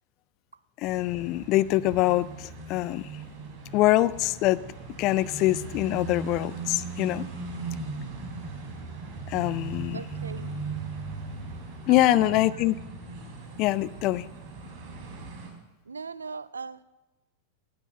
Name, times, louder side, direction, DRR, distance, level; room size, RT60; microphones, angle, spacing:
voice 1, 0.8-3.1 3.7-4.6 5.0-7.3 9.3-10.0 11.9-12.7 13.6-14.3, left 16 dB, 40° left, 17 dB, 0.4 m, -24 dB
sound 1, 0.8-15.5, right 4 dB, 30° right, 4.3 m, -38 dB
voice 2, 9.9-10.5 11.9-12.6 15.9-16.8, right 5 dB, 75° right, 19 dB, 0.5 m, -38 dB
16.0 x 9.6 x 6.7 m, 1.1 s
figure-of-eight pair, 90°, 0 cm